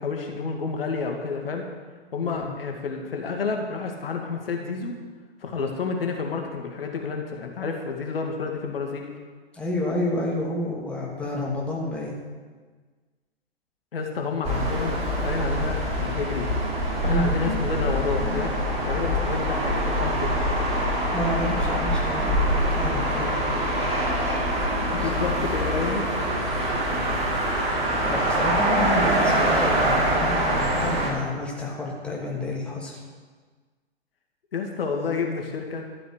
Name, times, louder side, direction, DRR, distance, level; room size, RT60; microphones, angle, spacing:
voice 1, 0.0-1.7 2.1-4.9 5.4-9.1 13.9-16.5 17.0-18.5 18.8-20.3 24.9-26.0 34.5-35.8, left 5 dB, 65° left, 2 dB, 2.3 m, -30 dB
voice 2, 2.2-2.5 9.5-12.2 17.0-17.3 21.1-23.3 25.0-25.4 28.1-33.0, left 1 dB, 5° left, -4 dB, 2.7 m, -30 dB
sound 1, 14.4-31.1, right 1 dB, 20° right, 3.3 m, -24 dB
13.5 x 8.0 x 8.0 m, 1.5 s
figure-of-eight pair, 120°, 31 cm